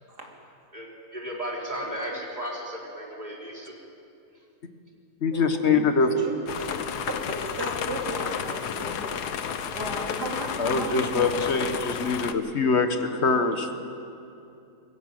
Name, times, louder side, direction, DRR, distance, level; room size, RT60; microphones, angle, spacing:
voice 1, 0.7-3.7, equal, 25° right, -2 dB, 3.9 m, -35 dB
voice 2, 1.8-2.2 5.3-6.8 7.1-11.4, right 1 dB, 85° right, 0 dB, 3.5 m, -36 dB
voice 3, 5.2-6.1 10.6-13.7, left 4 dB, 45° left, 7 dB, 1.6 m, -24 dB
sound 1, 6.5-12.3, left 8 dB, 80° left, 1.5 m, -31 dB
22.0 x 15.5 x 9.1 m, 2.7 s
omnidirectional pair, 1.7 m